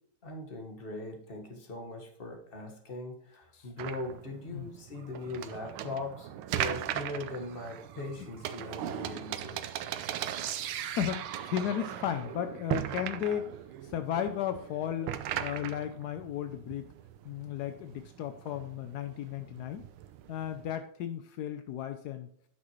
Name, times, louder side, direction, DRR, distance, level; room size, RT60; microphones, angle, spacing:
voice 1, 0.2-9.6, left 2 dB, 30° left, 2 dB, 1.5 m, -40 dB
sound 1, 3.8-20.7, right 11 dB, 85° right, 1.5 m, -39 dB
sound 2, 5.0-13.2 15.3-15.4, right 10 dB, 70° right, 1.2 m, -43 dB
voice 2, 10.9-13.6 13.8-16.9 17.2-19.8 20.3-22.3, left 10 dB, 80° left, 9 dB, 0.9 m, -35 dB
9.6 x 6.1 x 3.1 m, 0.70 s
omnidirectional pair, 2.3 m